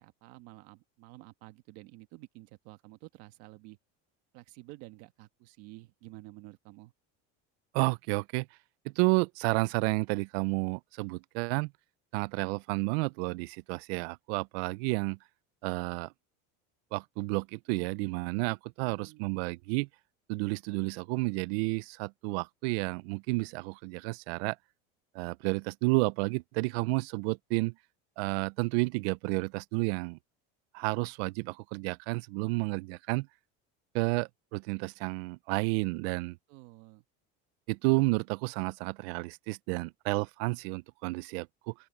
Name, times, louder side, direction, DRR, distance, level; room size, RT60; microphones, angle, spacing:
voice 1, 0.0-3.8 4.3-6.9 18.8-19.3 36.5-37.0, right 20 dB, 55° right, 1.5 m, -51 dB
voice 2, 7.7-8.5 8.9-11.7 12.1-15.2 15.6-16.1 16.9-19.9 20.3-24.6 25.1-27.7 28.2-30.2 30.7-33.3 33.9-36.4 37.7-41.7, right 26 dB, 75° right, 0.5 m, -31 dB
open air
cardioid pair, 175°, 31 cm